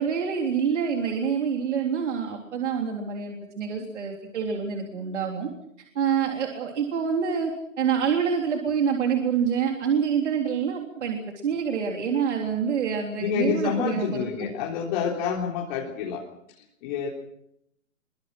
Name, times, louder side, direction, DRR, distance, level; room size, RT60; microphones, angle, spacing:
voice 1, 0.0-5.5 6.0-7.5 7.8-14.3, right 7 dB, 60° right, 2 dB, 3.6 m, -26 dB
voice 2, 13.2-16.2 16.6-17.1, left 6 dB, 35° left, -2 dB, 3.8 m, -28 dB
25.0 x 24.0 x 6.0 m, 0.75 s
hypercardioid pair, 145°, 39 cm